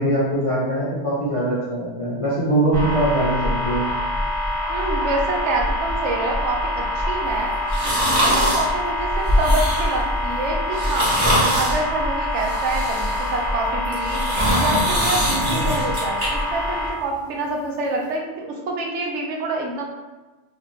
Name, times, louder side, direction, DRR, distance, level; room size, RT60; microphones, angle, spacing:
voice 1, 0.0-3.9, right 1 dB, 45° left, -8 dB, 0.4 m, -22 dB
sound 1, 2.7-16.9, left 1 dB, 25° left, 0.8 m, -24 dB
voice 2, 4.7-7.5 8.2-11.1 11.5-14.2 14.5-19.8, right 2 dB, 75° right, 0 dB, 0.9 m, -26 dB
sound 2, 7.7-8.7 9.3-10.0 10.7-11.8 12.4-13.3 13.8-16.3 16.7-16.8, equal, 25° right, 1.0 m, -23 dB
2.6 x 2.4 x 3.0 m, 1.2 s
omnidirectional pair, 1.2 m